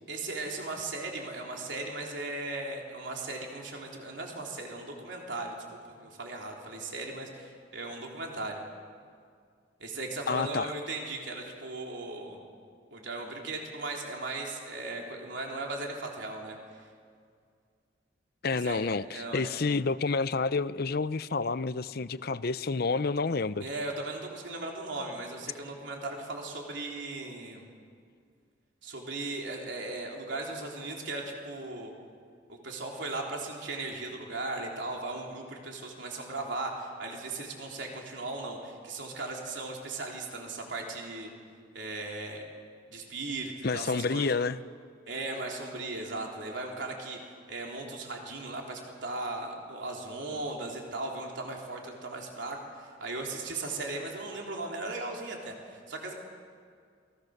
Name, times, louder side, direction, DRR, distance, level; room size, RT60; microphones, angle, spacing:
voice 1, 0.1-5.6 6.0-8.6 9.8-12.4 12.9-16.8 18.5-19.5 23.6-27.7 28.8-31.9 32.5-41.3 41.7-42.4 42.9-44.3 45.1-47.2 47.5-56.1, right 2 dB, 65° right, 0 dB, 3.7 m, -37 dB
voice 2, 10.3-10.7 18.4-23.7 43.6-44.6, left 4 dB, 50° left, 15 dB, 0.6 m, -29 dB
28.0 x 21.0 x 6.6 m, 2.2 s
head